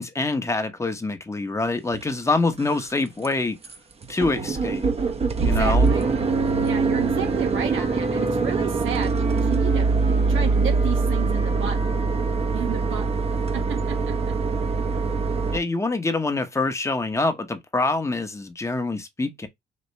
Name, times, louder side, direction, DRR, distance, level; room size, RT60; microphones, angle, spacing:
voice 1, 0.0-3.6 4.1-4.9 5.4-5.9 15.5-19.5, left 3 dB, 15° left, 1.0 m, -25 dB
sound 1, 1.9-2.0 2.5-2.9 3.2-3.3 3.6-3.8 4.0-15.6, right 4 dB, 30° right, 0.9 m, -23 dB
voice 2, 5.4-6.1 6.6-11.8 12.5-13.0 13.5-14.1, right 8 dB, 80° right, 1.4 m, -32 dB
4.2 x 2.9 x 3.2 m
cardioid pair, 90°, 20 cm